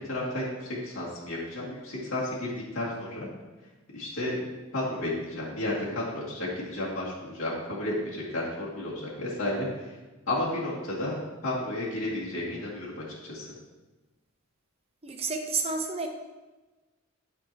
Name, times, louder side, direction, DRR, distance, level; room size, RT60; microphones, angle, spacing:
voice 1, 0.0-3.3 3.9-4.5 4.7-9.9 10.3-11.2 11.4-13.5, left 1 dB, 75° left, -7 dB, 2.2 m, -32 dB
voice 2, 15.0-16.1, right 4 dB, 30° right, 3 dB, 0.9 m, -30 dB
12.5 x 4.4 x 2.9 m, 1.2 s
head